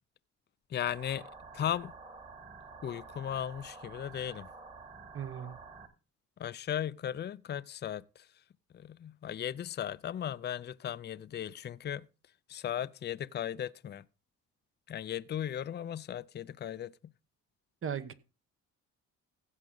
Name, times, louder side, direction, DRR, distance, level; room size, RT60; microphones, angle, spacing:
voice 1, 0.7-1.9 2.8-4.5 6.4-8.3 8.7-12.1 12.5-14.0 14.9-17.1, left 10 dB, 35° left, 0.5 m, -37 dB
sound 1, 0.9-5.9, right 4 dB, 25° right, 1.9 m, -50 dB
voice 2, 5.1-5.6 17.8-18.1, right 8 dB, 45° right, 1.1 m, -37 dB
16.0 x 6.2 x 3.9 m
cardioid pair, 90°, 30 cm